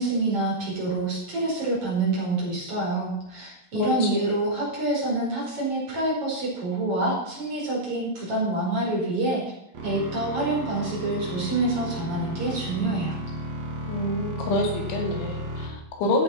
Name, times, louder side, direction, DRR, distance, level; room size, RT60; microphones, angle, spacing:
voice 1, 0.0-9.4 9.8-13.2, right 2 dB, 30° right, -4 dB, 5.9 m, -27 dB
voice 2, 3.7-4.3 13.9-16.2, left 1 dB, 85° left, 2 dB, 4.7 m, -27 dB
sound 1, 9.8-15.7, right 1 dB, 55° right, 4.2 m, -34 dB
14.0 x 8.8 x 5.8 m, 0.80 s
omnidirectional pair, 5.2 m